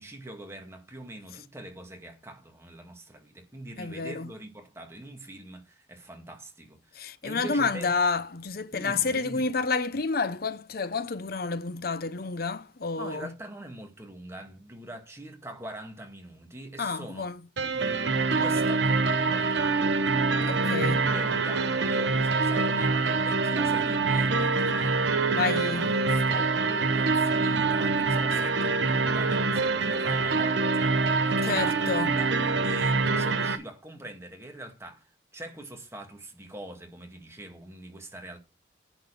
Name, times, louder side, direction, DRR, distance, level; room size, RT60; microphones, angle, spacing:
voice 1, 0.0-7.9 8.7-9.5 13.0-17.3 17.7-25.4 25.6-38.4, right 1 dB, 15° right, 1.8 m, -43 dB
voice 2, 3.8-4.3 6.9-13.3 16.8-17.4 20.5-21.0 25.4-25.9 31.4-32.1, left 4 dB, 55° left, 0.8 m, -29 dB
sound 1, 17.6-33.6, right 3 dB, 80° right, 0.9 m, -25 dB
10.5 x 4.1 x 6.8 m
head